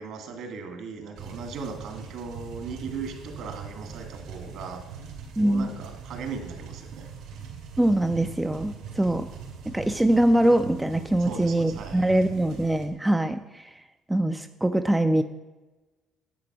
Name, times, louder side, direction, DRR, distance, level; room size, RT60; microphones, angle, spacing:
voice 1, 0.0-4.8 5.4-7.1 11.3-12.2, right 5 dB, 60° right, 5 dB, 2.1 m, -38 dB
sound 1, 1.2-12.9, right 6 dB, 80° right, 2.8 m, -41 dB
voice 2, 5.4-5.7 7.8-9.3 9.7-13.8 14.1-15.2, right 1 dB, 5° right, 8 dB, 0.3 m, -23 dB
10.5 x 8.6 x 6.0 m, 1.2 s
cardioid pair, 170°, 0 cm